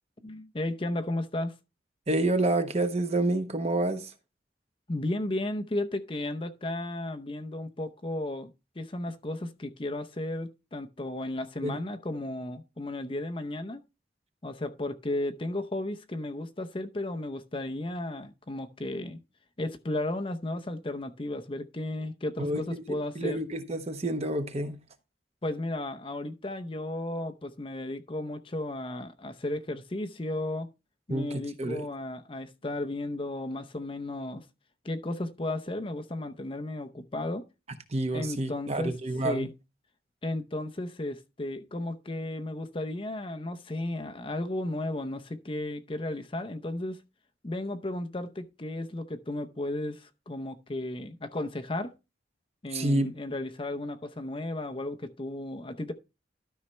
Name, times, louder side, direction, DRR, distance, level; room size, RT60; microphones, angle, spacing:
voice 1, 0.2-1.5 4.9-8.5 8.8-13.8 14.4-19.2 19.6-23.4 25.4-30.7 31.1-34.4 34.8-37.5 38.1-38.9 39.2-39.5 40.2-47.0 47.4-51.9 52.6-55.9, left 1 dB, 30° left, 0.7 m, -34 dB
voice 2, 2.1-4.1 11.6-11.8 22.4-22.8 23.1-24.8 31.1-31.8 37.9-39.5 52.7-53.1, right 2 dB, 35° right, 1.0 m, -28 dB
12.5 x 5.6 x 3.2 m
head